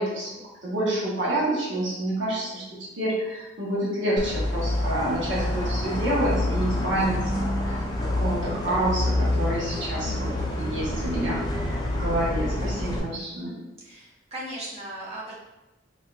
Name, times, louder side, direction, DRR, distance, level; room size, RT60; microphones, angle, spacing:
voice 1, 0.0-2.6 3.0-10.3 10.6-13.6, right 1 dB, 70° right, -7 dB, 1.1 m, -28 dB
sound 1, 4.2-13.0, left 1 dB, 20° left, 0.5 m, -27 dB
voice 2, 13.8-15.3, right 1 dB, 35° right, -7 dB, 1.1 m, -37 dB
4.2 x 2.7 x 2.3 m, 1.0 s
head